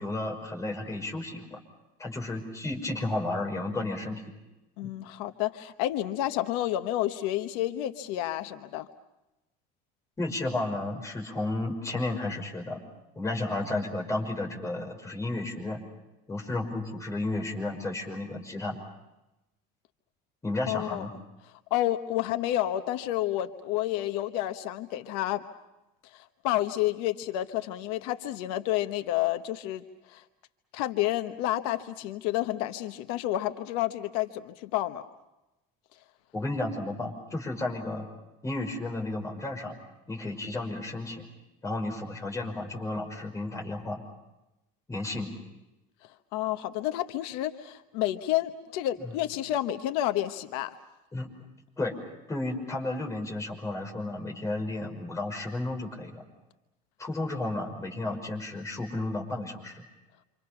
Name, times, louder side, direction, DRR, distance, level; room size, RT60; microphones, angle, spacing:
voice 1, 0.0-1.6 2.0-4.2 4.8-4.9 10.2-12.8 13.2-15.8 16.3-18.8 20.4-21.1 36.3-38.1 38.4-39.8 40.1-41.2 41.6-44.0 44.9-45.3 49.0-49.1 51.1-51.3 51.8-52.0 52.3-56.3 57.0-59.8, left 2 dB, 15° left, 0 dB, 5.8 m, -32 dB
voice 2, 4.8-8.9 20.7-21.0 21.7-25.4 26.1-30.2 30.7-35.0 46.3-50.8, left 14 dB, 90° left, 8 dB, 1.2 m, -30 dB
29.0 x 26.5 x 5.9 m, 0.97 s
cardioid pair, 140°, 20 cm